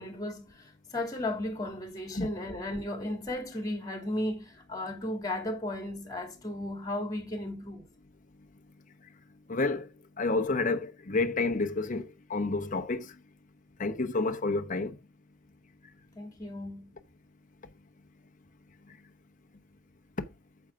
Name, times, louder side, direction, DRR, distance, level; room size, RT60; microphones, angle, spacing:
voice 1, 0.0-7.8 16.2-17.0, left 1 dB, 20° left, 2.7 m, -35 dB
voice 2, 9.5-9.9 10.2-13.1 13.8-15.0, left 3 dB, 40° left, 0.9 m, -29 dB
8.8 x 7.1 x 3.6 m
head